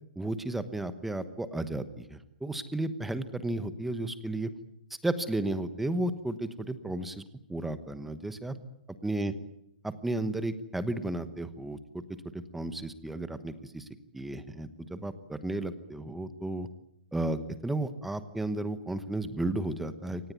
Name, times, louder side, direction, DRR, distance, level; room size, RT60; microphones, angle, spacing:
voice 1, 0.2-4.5 5.0-7.2 7.5-8.6 9.0-9.3 9.8-12.0 12.3-13.8 14.1-16.7 17.1-20.3, right 2 dB, 5° right, 12 dB, 1.1 m, -33 dB
25.5 x 18.5 x 9.5 m, 0.78 s
hypercardioid pair, 170°, 5 cm